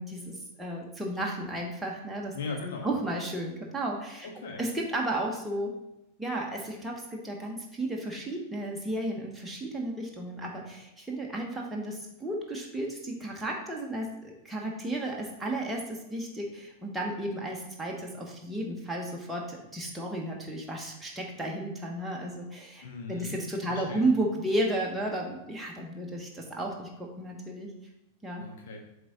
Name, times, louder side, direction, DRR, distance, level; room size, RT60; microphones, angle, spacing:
voice 1, 0.0-2.3 2.8-4.3 4.6-5.7 6.2-27.7 28.2-28.4, right 1 dB, 5° right, -2 dB, 1.2 m, -33 dB
voice 2, 2.3-3.0 4.2-4.6 22.8-23.4 23.7-24.1 28.4-28.8, left 4 dB, 55° left, 1 dB, 1.4 m, -38 dB
7.7 x 3.6 x 4.1 m, 0.87 s
figure-of-eight pair, 90°, 0 cm